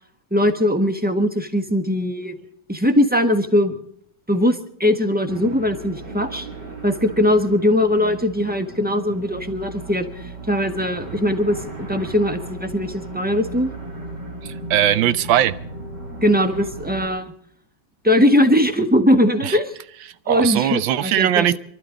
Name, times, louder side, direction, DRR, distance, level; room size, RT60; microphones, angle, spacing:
voice 1, 0.3-2.4 2.7-3.8 4.3-6.5 6.8-11.6 11.9-13.7 16.2-17.3 18.0-19.8 20.3-21.5, left 1 dB, 5° right, 6 dB, 1.2 m, -20 dB
sound 1, 5.3-17.1, right 2 dB, 60° right, 3.4 m, -36 dB
voice 2, 14.4-15.6 19.4-19.6 20.3-21.6, right 11 dB, 75° right, 15 dB, 1.5 m, -19 dB
27.5 x 12.5 x 3.9 m, 0.67 s
omnidirectional pair, 2.1 m